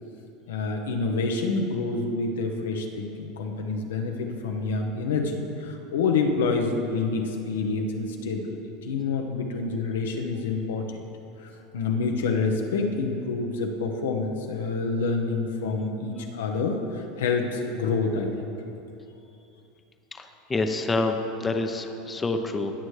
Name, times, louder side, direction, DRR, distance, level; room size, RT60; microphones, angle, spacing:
voice 1, 0.5-11.0 11.4-18.5, left 4 dB, 80° left, 3 dB, 0.9 m, -27 dB
voice 2, 20.2-22.7, left 3 dB, 20° left, 5 dB, 0.8 m, -27 dB
19.0 x 6.4 x 3.3 m, 2.9 s
hypercardioid pair, 90°, 0 cm